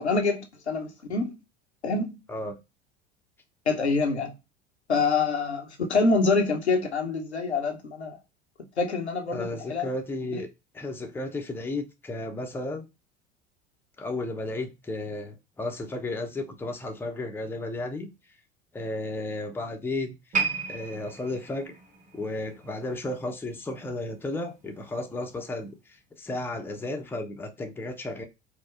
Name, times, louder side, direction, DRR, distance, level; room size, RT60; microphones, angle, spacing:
voice 1, 0.0-1.4 1.8-2.2 3.7-4.3 4.9-8.2 8.8-9.9 10.3-10.4, left 4 dB, 85° left, 0.7 m, -26 dB
voice 2, 9.3-10.5 10.7-12.8 14.0-18.1 18.7-20.2 20.7-21.8 22.1-25.8 26.2-28.2, left 2 dB, 5° left, 0.5 m, -33 dB
sound 1, 20.3-23.6 23.9-24.2 24.9-25.0, right 5 dB, 25° right, 1.1 m, -33 dB
4.6 x 2.1 x 2.3 m
figure-of-eight pair, 70°, 32 cm